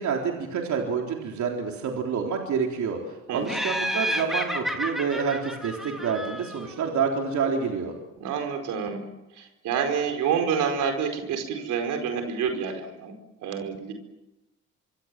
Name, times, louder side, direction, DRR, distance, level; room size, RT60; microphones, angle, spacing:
voice 1, 0.0-7.9, right 6 dB, 70° right, 1 dB, 3.9 m, -28 dB
voice 2, 3.3-3.6 8.2-9.0 9.3-13.1 13.4-13.9, right 7 dB, 90° right, 5 dB, 4.8 m, -28 dB
Laughter, 3.5-6.8, equal, ahead, 4.0 m, -31 dB
25.0 x 25.0 x 7.6 m, 0.98 s
cardioid pair, 90°, 30 cm